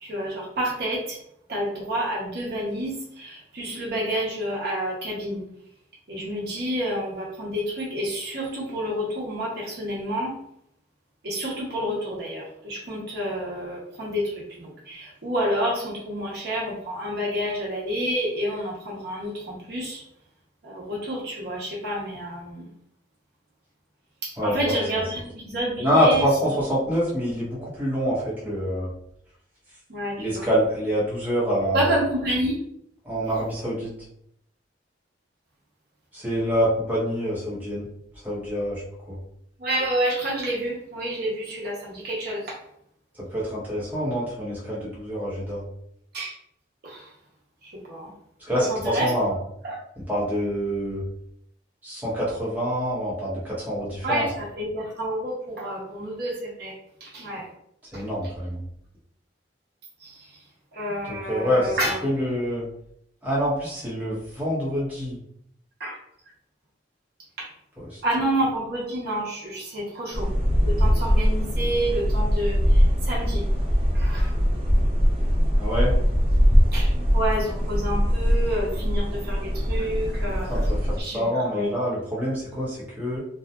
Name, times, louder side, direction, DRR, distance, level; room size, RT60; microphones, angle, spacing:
voice 1, 0.0-1.2 1.5-5.4 6.1-10.3 11.2-14.3 14.6-20.0 20.6-22.6 24.2-26.2 29.9-30.5 31.7-32.6 39.6-42.6 46.1-46.3 46.8-47.0 47.9-48.1 48.7-49.1 49.6-49.7 54.0-56.7 57.0-57.4 60.7-62.0 65.8-66.0 67.4-67.5 68.0-70.3 70.6-72.6 73.1-73.4 74.0-74.3 76.7-80.5 81.0-81.2 81.5-81.7, right 1 dB, 60° right, -4 dB, 0.7 m, -29 dB
voice 2, 24.4-24.7 25.8-28.9 30.2-31.9 33.0-33.9 36.1-37.8 38.2-38.8 39.1-39.2 43.2-45.6 48.5-49.4 50.0-51.0 51.8-54.3 57.9-58.6 60.9-62.7 63.2-65.2 67.8-68.0 75.6-75.9 80.5-83.2, equal, 10° right, -8 dB, 1.0 m, -26 dB
sound 1, 70.1-81.0, equal, 30° right, 0.5 m, -21 dB
2.7 x 2.3 x 2.2 m, 0.71 s
head